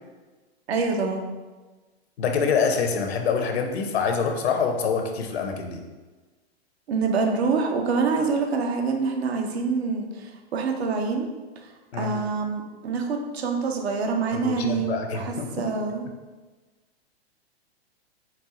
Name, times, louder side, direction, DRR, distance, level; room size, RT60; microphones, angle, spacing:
voice 1, 0.7-1.2 6.9-11.3 12.0-16.1, right 4 dB, 75° right, 3 dB, 0.7 m, -26 dB
voice 2, 2.2-5.8 11.9-12.2 14.3-15.5, left 5 dB, 75° left, 4 dB, 0.7 m, -25 dB
4.5 x 2.1 x 3.8 m, 1.3 s
hypercardioid pair, 120°, 32 cm